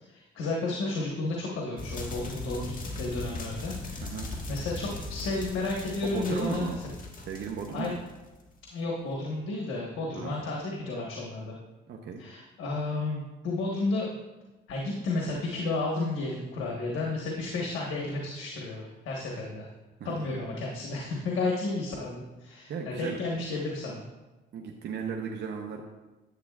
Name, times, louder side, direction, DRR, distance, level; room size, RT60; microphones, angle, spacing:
voice 1, 0.1-4.0 4.5-6.7 7.7-8.0 8.7-11.6 12.2-14.1 14.7-19.7 20.0-24.1, left 2 dB, 85° left, -2 dB, 1.3 m, -32 dB
sound 1, 1.8-8.6, left 2 dB, 45° left, 1.6 m, -39 dB
voice 2, 6.0-6.8 7.3-8.0 10.1-10.3 11.9-12.2 20.0-20.1 22.7-23.2 24.5-25.8, right 6 dB, 60° right, 1 dB, 0.8 m, -35 dB
10.5 x 8.3 x 2.4 m, 1.1 s
cardioid pair, 90°, 20 cm